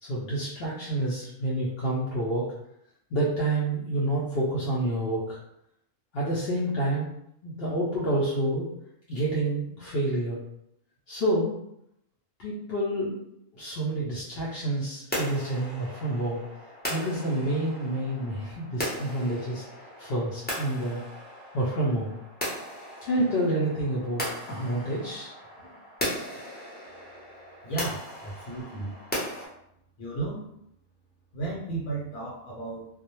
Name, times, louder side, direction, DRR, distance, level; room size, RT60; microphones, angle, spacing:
voice 1, 0.0-2.4 3.1-5.4 6.1-7.1 7.4-8.7 9.1-10.4 11.1-11.6 12.4-13.2 13.5-16.4 16.9-19.6 20.0-21.0 21.5-22.1 23.0-25.3 25.6-25.7, right 1 dB, 60° left, -6 dB, 0.6 m, -28 dB
sound 1, 15.1-29.5, equal, 15° left, 0.4 m, -37 dB
voice 2, 27.6-28.9 30.0-30.5 31.3-32.9, right 3 dB, 85° left, -4 dB, 1.1 m, -34 dB
2.3 x 2.0 x 2.9 m, 0.76 s
omnidirectional pair, 1.4 m